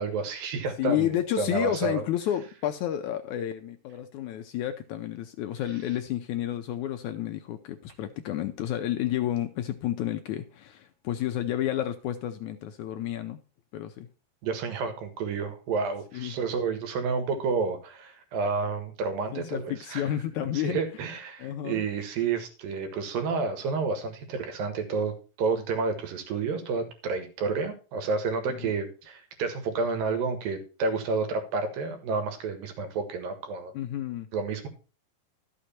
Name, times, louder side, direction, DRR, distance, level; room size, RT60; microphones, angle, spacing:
voice 1, 0.0-2.0 14.4-20.0 20.6-33.7 34.3-34.7, right 4 dB, 80° right, 7 dB, 3.2 m, -30 dB
voice 2, 0.8-13.4 13.7-14.1 16.1-16.3 19.3-20.8 21.4-21.8 28.6-28.7 33.7-34.3, left 11 dB, 80° left, 7 dB, 1.8 m, -31 dB
12.5 x 6.4 x 4.2 m, 0.35 s
omnidirectional pair, 4.0 m